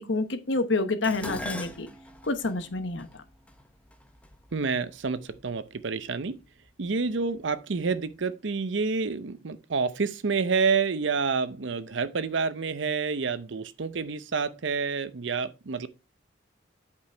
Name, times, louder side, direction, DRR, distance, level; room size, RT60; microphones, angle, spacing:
voice 1, 0.0-1.9 2.2-3.1, left 3 dB, 65° left, 1.0 m, -28 dB
Dishes pots and pans, 1.0-5.4 6.3-6.7 7.1-7.9 8.2-8.3, left 1 dB, 5° left, 0.8 m, -42 dB
voice 2, 4.5-6.4 6.8-15.9, right 5 dB, 65° right, 0.6 m, -28 dB
8.5 x 5.2 x 4.4 m
head